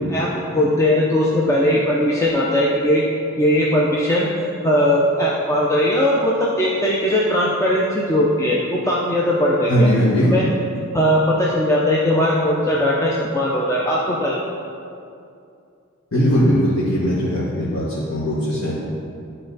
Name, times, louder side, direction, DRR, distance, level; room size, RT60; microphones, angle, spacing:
voice 1, 0.1-3.0 3.4-4.3 4.6-9.9 10.3-10.4 10.9-14.4, left 1 dB, 15° left, -5 dB, 0.5 m, -19 dB
voice 2, 9.7-10.3 16.1-18.7, equal, 70° left, -8 dB, 1.3 m, -19 dB
11.5 x 4.3 x 4.0 m, 2.5 s
head